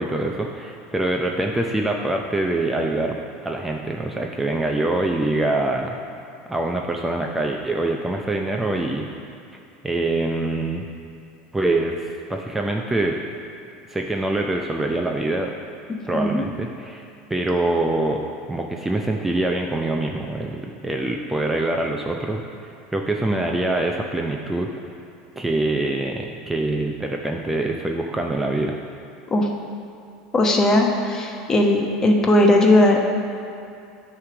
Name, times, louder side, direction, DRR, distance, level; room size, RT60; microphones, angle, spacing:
voice 1, 0.0-3.2 3.4-5.9 6.5-9.1 9.8-10.9 11.5-13.2 13.9-15.5 16.1-17.0 17.3-18.2 18.5-24.7 25.4-28.8, right 2 dB, 10° right, 1 dB, 0.5 m, -24 dB
voice 2, 16.1-16.4 29.3-29.5 30.3-33.0, left 1 dB, 25° left, 2 dB, 1.0 m, -17 dB
9.4 x 3.3 x 6.0 m, 2.5 s
supercardioid pair, 100°, 2 cm